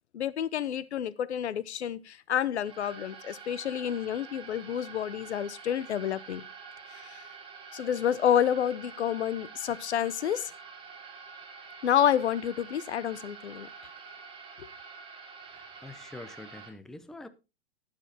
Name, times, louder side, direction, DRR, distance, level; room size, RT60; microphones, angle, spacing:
voice 1, 0.1-6.4 6.9-7.2 7.7-10.5 11.8-13.7 14.6-14.7, left 9 dB, 90° left, 0.8 m, -29 dB
sound 1, 2.5-16.7, right 5 dB, 15° right, 2.0 m, -47 dB
voice 2, 15.5-17.3, left 2 dB, ahead, 0.5 m, -45 dB
19.0 x 7.1 x 2.8 m
hypercardioid pair, 135°, 32 cm